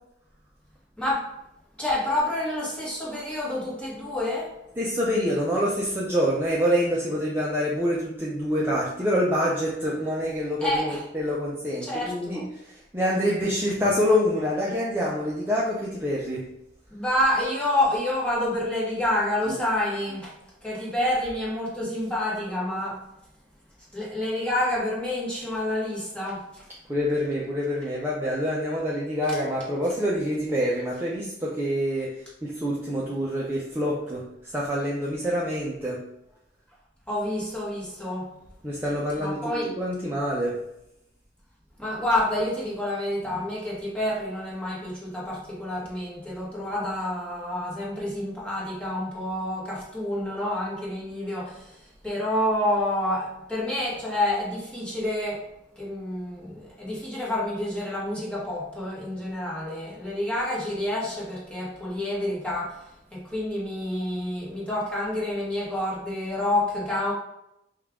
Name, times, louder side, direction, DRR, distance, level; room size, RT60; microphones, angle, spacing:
voice 1, 1.0-1.3 1.8-4.5 10.6-11.0 11.8-12.4 16.9-20.3 20.6-23.0 23.9-26.7 37.1-38.3 39.2-39.7 41.8-55.4 55.7-67.1, left 1 dB, 5° left, -6 dB, 1.3 m, -28 dB
voice 2, 4.8-16.5 19.5-19.6 26.9-36.0 38.6-40.5, equal, 15° right, -5 dB, 0.5 m, -26 dB
5.4 x 2.4 x 3.5 m, 0.81 s
head